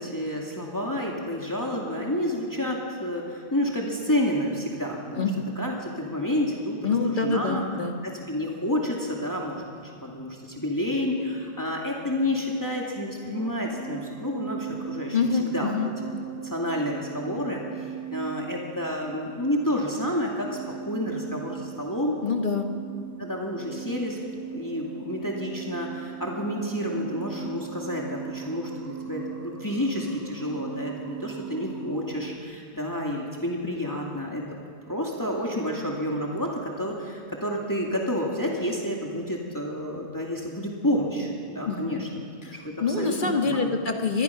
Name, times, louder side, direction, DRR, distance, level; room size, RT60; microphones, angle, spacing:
voice 1, 0.0-5.3 5.6-6.9 7.2-7.6 8.0-15.7 16.4-22.2 23.2-24.2 24.5-34.4 34.9-42.1 42.6-43.7, left 1 dB, 15° left, -2 dB, 2.3 m, -29 dB
voice 2, 6.8-7.9 15.1-15.9 22.2-22.7 41.6-42.1 42.4-44.2, left 4 dB, 45° left, 4 dB, 1.6 m, -26 dB
sound 1, 13.3-32.4, right 8 dB, 15° right, 0.9 m, -39 dB
24.0 x 20.0 x 5.8 m, 2.2 s
omnidirectional pair, 1.2 m